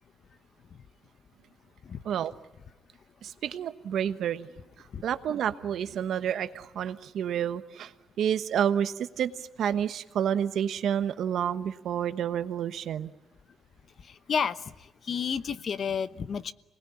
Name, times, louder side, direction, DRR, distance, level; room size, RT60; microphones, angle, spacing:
voice 1, 3.2-4.5 4.8-7.9 8.2-13.1, right 9 dB, 70° right, 11 dB, 1.2 m, -29 dB
voice 2, 15.1-16.5, left 6 dB, 50° left, 15 dB, 0.9 m, -30 dB
26.5 x 19.5 x 9.8 m, 1.1 s
cardioid pair, 105°, 0 cm